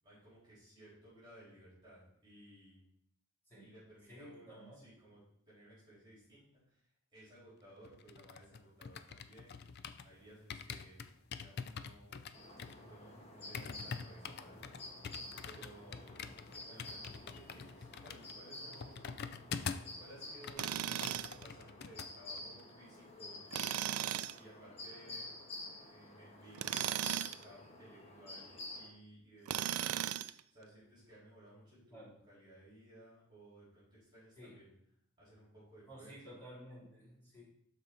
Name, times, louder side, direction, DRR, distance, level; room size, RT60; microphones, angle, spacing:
voice 1, 0.0-2.8 3.6-5.2 5.5-6.8 7.1-9.6 10.0-11.0 11.3-12.2 12.6-14.8 15.4-16.3 16.7-19.3 20.0-23.4 24.3-25.3 25.8-26.7 27.2-30.0 30.5-34.7 35.2-36.4, right 1 dB, 20° right, -9 dB, 4.0 m, -58 dB
voice 2, 4.1-4.8 31.9-32.1 34.4-34.6 35.9-37.4, equal, 10° left, -8 dB, 3.0 m, -53 dB
sound 1, 7.8-10.1 10.5-20.0 20.3-22.1 22.4-22.6, left 6 dB, 50° left, 0.4 m, -46 dB
sound 2, 12.3-28.9, left 2 dB, 30° left, 1.5 m, -50 dB
Tools, 20.6-21.4 23.5-24.4 26.5-27.4 29.5-30.4, right 11 dB, 85° right, 0.4 m, -36 dB
12.5 x 4.6 x 4.0 m, 0.69 s
head